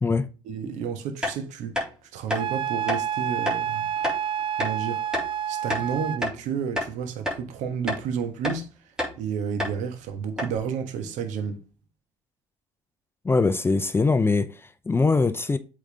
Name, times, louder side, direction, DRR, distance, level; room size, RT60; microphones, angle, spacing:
voice 1, 0.4-3.9 4.6-5.0 5.5-8.7 9.1-11.6, right 7 dB, 65° right, 1.4 m, -31 dB
sound 1, 1.2-1.4 1.7-1.9 2.3-2.4 2.9-3.0 3.4-3.6 4.0-4.2 4.6-4.7 5.1-5.3 5.7-6.4 6.7-6.9 7.2-7.4 7.9-8.0 8.4-8.6 9.0-9.2 9.6-9.8 10.0-10.1 10.4-10.6, left 1 dB, 5° right, 3.7 m, -28 dB
Wind instrument woodwind instrument, 2.4-6.2, right 9 dB, 40° right, 0.3 m, -29 dB
voice 2, 13.2-15.6, left 3 dB, 15° left, 0.6 m, -22 dB
8.1 x 4.0 x 3.5 m
hypercardioid pair, 60°, 14 cm